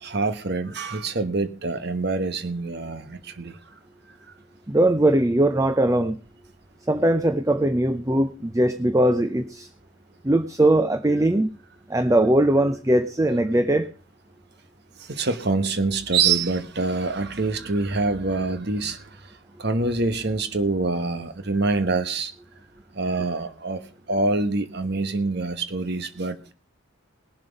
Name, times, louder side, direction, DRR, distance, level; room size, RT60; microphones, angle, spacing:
voice 1, 0.0-3.5 15.1-19.0 19.6-22.3 22.9-23.8 24.1-26.5, right 3 dB, 50° right, 10 dB, 1.2 m, -25 dB
voice 2, 4.7-6.2 6.9-9.7 10.2-11.6 11.9-13.9, right 1 dB, 15° right, 11 dB, 0.5 m, -20 dB
20.0 x 7.5 x 5.3 m, 0.38 s
head